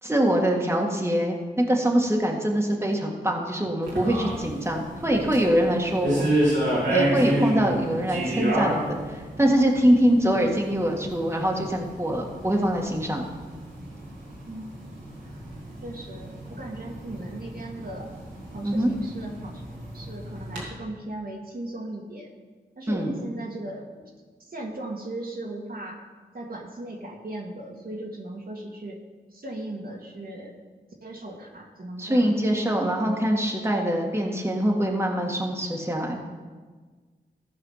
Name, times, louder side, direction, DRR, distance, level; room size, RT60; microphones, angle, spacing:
voice 1, 0.0-6.3 6.9-13.3 18.6-18.9 22.9-23.1 32.0-36.2, equal, 15° right, -1 dB, 1.8 m, -24 dB
sound 1, 3.8-20.6, right 1 dB, 85° right, 2.6 m, -30 dB
voice 2, 15.8-18.1 18.5-19.6 19.9-22.3 22.8-23.9 24.4-26.0 26.3-29.0 29.3-30.5 31.0-32.6, right 1 dB, 55° right, -1 dB, 1.9 m, -37 dB
14.5 x 4.9 x 5.6 m, 1.4 s
cardioid pair, 40°, 19 cm